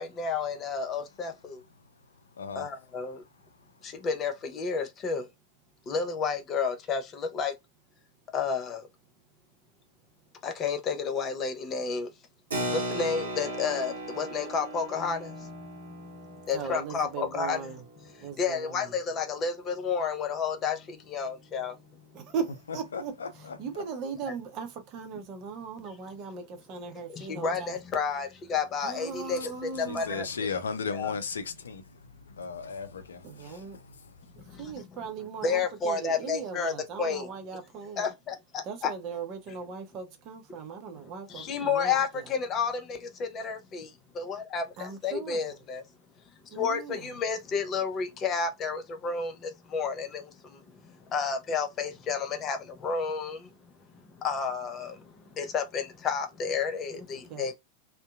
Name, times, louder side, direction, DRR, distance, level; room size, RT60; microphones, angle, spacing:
voice 1, 0.0-1.6 2.5-3.2 3.8-5.3 5.9-7.5 8.3-8.9 10.4-12.1 12.7-17.6 18.4-21.8 27.1-30.5 30.9-31.1 34.5-34.7 35.4-36.7 37.0-37.3 38.0-38.9 41.3-45.8 46.5-53.7 54.1-57.5, left 5 dB, 30° left, 0.6 m, -31 dB
voice 2, 2.4-2.7 22.9-23.6 29.9-33.6, left 5 dB, 70° left, 0.4 m, -36 dB
Keyboard (musical), 12.5-18.5, right 1 dB, 70° right, 0.8 m, -37 dB
voice 3, 16.5-17.9 18.2-18.9 22.1-27.8 28.8-30.3 33.2-33.8 34.4-38.1 38.6-42.3 44.8-45.5 46.5-47.2 56.9-57.5, right 6 dB, 40° right, 0.6 m, -39 dB
2.7 x 2.2 x 2.2 m
figure-of-eight pair, 90°, 0 cm